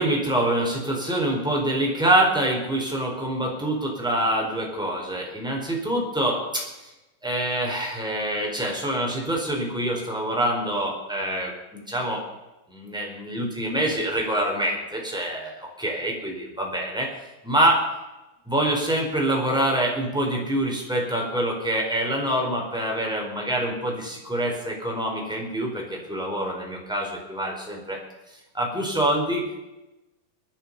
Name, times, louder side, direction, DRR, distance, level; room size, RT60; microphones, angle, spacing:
voice 1, 0.0-6.9 7.2-12.2 12.7-17.9 18.5-28.0 28.5-29.6, right 1 dB, ahead, -1 dB, 4.2 m, -25 dB
25.0 x 10.0 x 5.6 m, 1.0 s
omnidirectional pair, 4.1 m